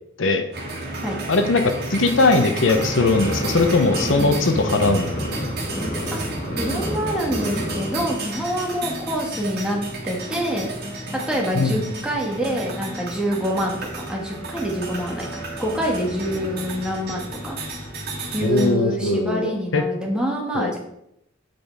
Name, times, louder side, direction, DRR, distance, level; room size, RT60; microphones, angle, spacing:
voice 1, 0.2-0.5 1.3-5.1 11.5-11.8 18.4-19.8 20.5-20.7, left 3 dB, 70° left, 7 dB, 0.8 m, -20 dB
sound 1, 0.5-18.7, right 2 dB, 55° right, 2.1 m, -32 dB
sound 2, 2.7-8.0, equal, 40° left, 1.5 m, -29 dB
voice 2, 6.6-10.7 11.1-13.8 14.1-17.6 18.3-20.8, right 1 dB, 5° right, -2 dB, 1.6 m, -26 dB
7.8 x 5.1 x 4.6 m, 0.78 s
head